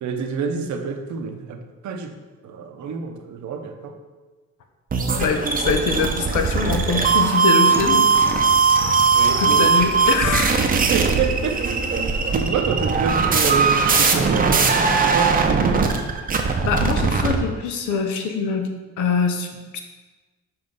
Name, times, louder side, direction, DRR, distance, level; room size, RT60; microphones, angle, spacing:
voice 1, 0.0-2.2 2.4-3.9 9.1-9.8 10.6-11.7 12.3-15.9, right 6 dB, 70° right, 4 dB, 0.8 m, -28 dB
sound 1, 4.9-17.4, right 5 dB, 30° right, 0.6 m, -19 dB
voice 2, 5.2-8.0 9.4-10.6 16.6-18.7 19.0-19.8, left 5 dB, 80° left, 5 dB, 0.8 m, -23 dB
6.7 x 2.6 x 5.3 m, 1.3 s
cardioid pair, 90°, 30 cm